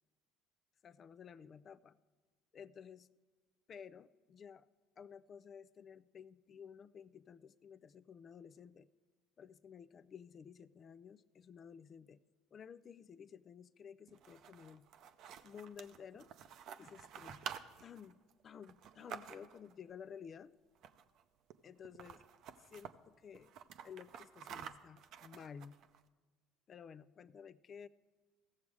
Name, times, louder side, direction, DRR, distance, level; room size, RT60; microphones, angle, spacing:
voice 1, 0.8-2.0 2.5-3.1 3.7-4.7 5.0-8.9 9.4-12.2 12.5-14.8 15.4-16.3 16.8-17.5 17.8-20.5 21.6-22.2 22.7-23.5 23.8-25.8 26.7-27.9, left 7 dB, 45° left, 15 dB, 0.4 m, -53 dB
sound 1, 14.1-19.7 20.7-21.2 21.5-21.6 21.8-22.9 23.3-26.0, right 8 dB, 60° right, 0.6 m, -50 dB
16.0 x 7.1 x 4.8 m, 1.4 s
hypercardioid pair, 75°, 0 cm